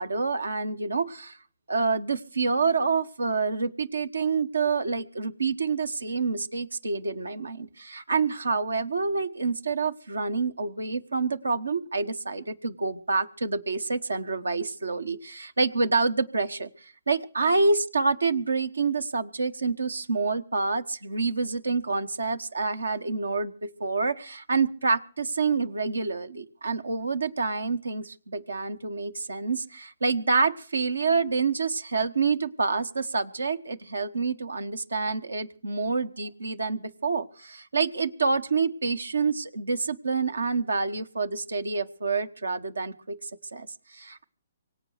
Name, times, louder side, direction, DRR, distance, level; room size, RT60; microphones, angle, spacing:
voice 1, 0.0-1.4 1.7-44.2, right 4 dB, 90° right, 12 dB, 1.2 m, -27 dB
24.0 x 8.0 x 6.5 m, 0.41 s
hypercardioid pair, 135°, 0 cm